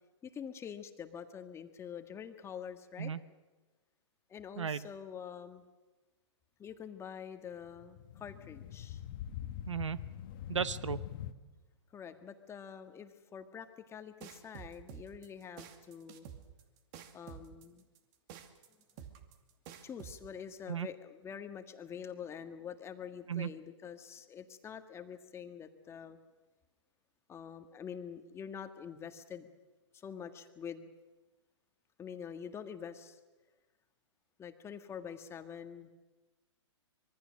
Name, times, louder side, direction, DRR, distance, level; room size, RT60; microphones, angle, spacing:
voice 1, 0.2-3.1 4.3-5.7 6.6-9.0 11.9-16.3 17.1-17.8 19.8-26.2 27.3-29.5 29.9-30.9 32.0-33.2 34.4-35.9, left 7 dB, 15° left, 7 dB, 1.7 m, -46 dB
voice 2, 4.6-4.9 9.7-10.0 10.5-11.0 20.7-20.9 23.3-23.5, right 7 dB, 80° right, 16 dB, 1.0 m, -35 dB
sound 1, 7.6-11.3, left 11 dB, 45° left, 1.7 m, -43 dB
sound 2, 14.2-20.2, right 8 dB, 40° right, 2.3 m, -49 dB
25.5 x 23.0 x 6.4 m, 1.2 s
hypercardioid pair, 120°, 16 cm